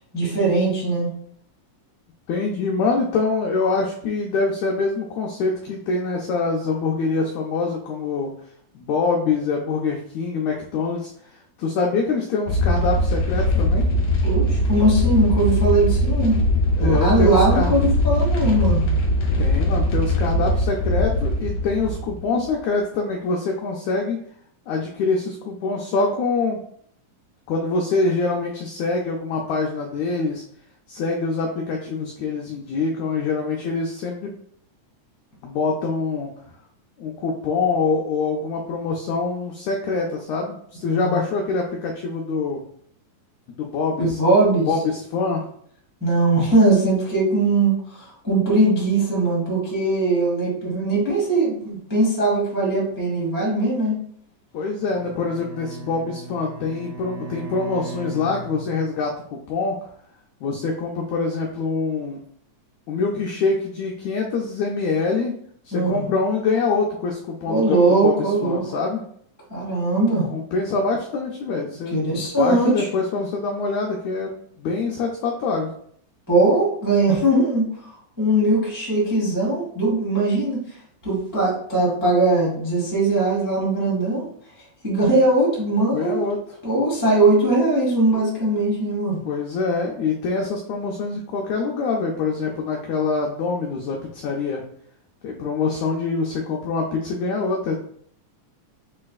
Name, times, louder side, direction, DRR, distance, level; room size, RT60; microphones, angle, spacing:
voice 1, 0.1-1.1 14.2-16.4 16.8-18.9 40.8-41.2 44.0-44.7 46.0-53.9 65.7-66.0 67.5-68.6 69.5-70.3 71.9-72.9 76.3-77.7 78.2-80.6 81.0-84.2 84.8-86.2 86.6-89.2, right 2 dB, 15° right, -6 dB, 0.7 m, -20 dB
voice 2, 2.3-8.3 8.8-11.1 11.6-13.9 16.8-17.7 19.4-24.2 24.7-26.6 27.5-30.4 30.9-34.3 35.4-36.3 37.0-42.6 43.5-44.2 44.6-45.5 54.5-59.9 60.4-62.2 62.9-65.3 65.7-69.0 70.3-75.7 85.9-86.6 89.3-94.6 95.2-97.8, left 4 dB, 85° left, 0 dB, 1.6 m, -25 dB
sound 1, 12.5-22.5, left 1 dB, 60° left, 2.0 m, -21 dB
Bowed string instrument, 54.8-59.1, right 5 dB, 75° right, 2.2 m, -37 dB
6.4 x 3.2 x 2.3 m, 0.64 s
omnidirectional pair, 3.9 m